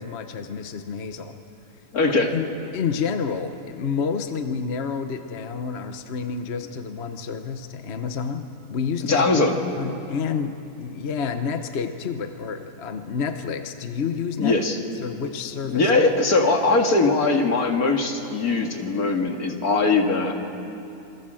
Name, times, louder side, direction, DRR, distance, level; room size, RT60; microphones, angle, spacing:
voice 1, 0.0-1.4 2.3-2.5 2.7-9.4 9.8-14.6 15.0-15.9, left 6 dB, 50° left, 8 dB, 1.2 m, -29 dB
voice 2, 1.9-2.3 9.1-9.6 14.4-14.8 15.6-20.3, left 3 dB, 75° left, 3 dB, 2.5 m, -21 dB
27.5 x 22.0 x 7.7 m, 2.8 s
omnidirectional pair, 1.6 m